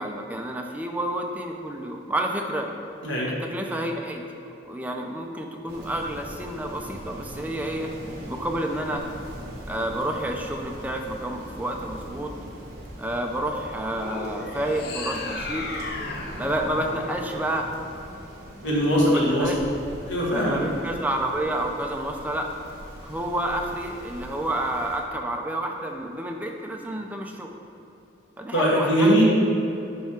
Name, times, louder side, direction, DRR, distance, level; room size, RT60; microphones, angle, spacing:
voice 1, 0.0-2.7 3.3-4.2 4.7-7.9 8.3-9.0 9.7-12.3 13.0-15.7 16.4-17.7 19.0-19.6 20.3-22.5 23.0-27.5 28.4-29.2, right 1 dB, 10° right, 1 dB, 0.5 m, -29 dB
Rain, 5.7-25.0, equal, 55° right, 1.3 m, -41 dB
sound 1, 13.9-18.3, left 2 dB, 55° left, 0.6 m, -35 dB
voice 2, 18.6-19.5 20.0-20.6 28.5-29.2, equal, 85° left, -5 dB, 1.6 m, -21 dB
10.5 x 3.5 x 4.4 m, 2.8 s
head